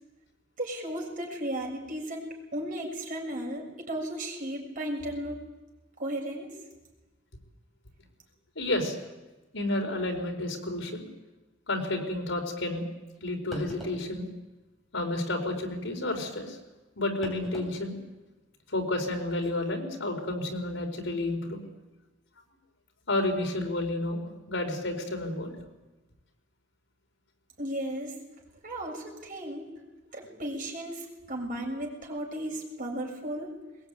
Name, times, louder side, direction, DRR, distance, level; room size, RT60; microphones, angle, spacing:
voice 1, 0.6-5.4 6.0-6.5 27.6-28.1 28.6-29.7 30.1-33.6, right 1 dB, 45° right, 0 dB, 6.9 m, -35 dB
voice 2, 8.5-9.0 9.5-11.1 11.7-12.9 13.2-14.3 14.9-16.6 17.0-18.0 18.7-21.6 23.1-25.6, left 2 dB, 75° left, 3 dB, 4.8 m, -31 dB
sound 1, 13.1-13.2 13.5-14.1 15.5-15.7 17.2-17.7 18.1-18.2 19.4-19.5, right 1 dB, ahead, 7.8 m, -42 dB
22.0 x 21.0 x 9.4 m, 1.1 s
head